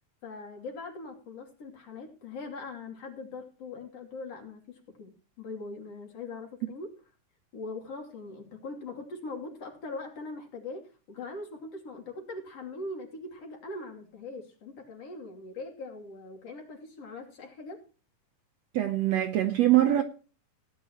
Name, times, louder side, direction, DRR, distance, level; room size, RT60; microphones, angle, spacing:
voice 1, 0.2-7.0 7.5-17.8, left 3 dB, 50° left, 3.8 m, -41 dB
voice 2, 18.7-20.0, right 13 dB, 70° right, 1.7 m, -23 dB
17.5 x 10.5 x 3.0 m
omnidirectional pair, 3.8 m